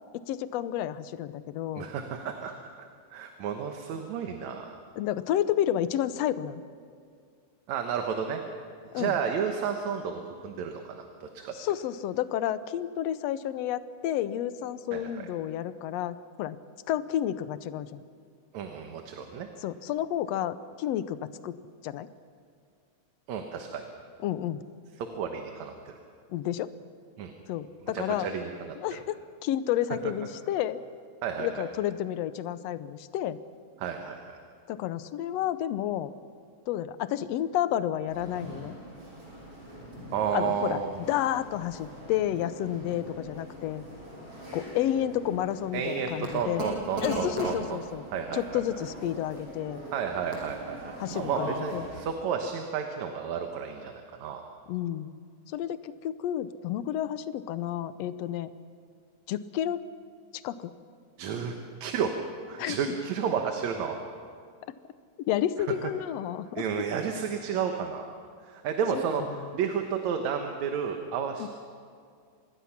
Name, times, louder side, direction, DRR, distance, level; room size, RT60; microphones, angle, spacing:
voice 1, 0.1-1.9 5.0-6.6 8.9-9.1 11.6-16.6 16.9-18.0 19.6-21.2 21.4-21.5 21.8-22.1 24.2-24.6 26.3-26.7 27.5-28.3 28.8-30.8 31.4-33.4 34.7-36.1 36.7-38.8 40.3-40.8 41.1-43.8 44.5-46.7 47.0-48.0 48.3-49.8 51.0-51.9 54.7-55.2 55.5-58.5 59.3-59.8 60.4-60.7 62.6-62.8 65.3-66.7 68.9-69.0 71.4-71.5, left 11 dB, 70° left, 13 dB, 1.8 m, -30 dB
voice 2, 1.8-2.9 3.1-4.8 7.7-8.4 8.8-11.5 14.9-15.3 18.5-19.5 23.3-23.9 25.0-26.0 27.2-27.3 27.9-28.8 31.2-31.6 33.8-34.4 40.1-41.0 45.7-47.8 48.1-48.6 49.9-54.4 61.2-61.5 61.8-62.2 62.5-64.0 66.6-68.1 68.4-69.2 69.5-71.5, right 7 dB, 75° right, 4 dB, 2.5 m, -32 dB
sound 1, 38.1-52.1, equal, 55° right, 7.3 m, -41 dB
26.0 x 20.5 x 5.9 m, 2.2 s
omnidirectional pair, 3.3 m